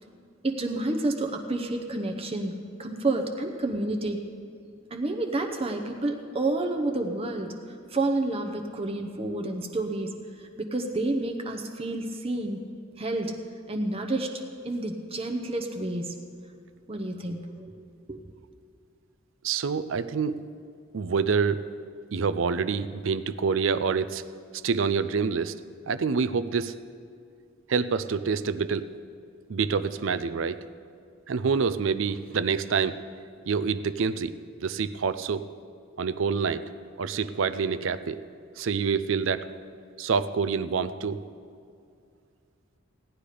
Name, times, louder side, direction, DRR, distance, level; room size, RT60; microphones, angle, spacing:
voice 1, 0.4-4.2 4.9-7.5 7.9-12.6 13.0-13.3 13.7-14.3 14.6-16.1 16.9-17.7 18.1-18.2, right 2 dB, 30° right, 4 dB, 0.8 m, -29 dB
voice 2, 19.4-20.4 20.9-21.6 22.1-24.2 24.6-25.5 25.9-26.7 27.7-28.9 29.5-30.6 31.3-33.0 33.5-34.3 34.6-35.5 36.0-36.6 37.0-38.2 38.6-39.5 40.0-41.2, right 5 dB, 65° right, 14 dB, 0.4 m, -27 dB
16.5 x 10.0 x 5.0 m, 2.3 s
head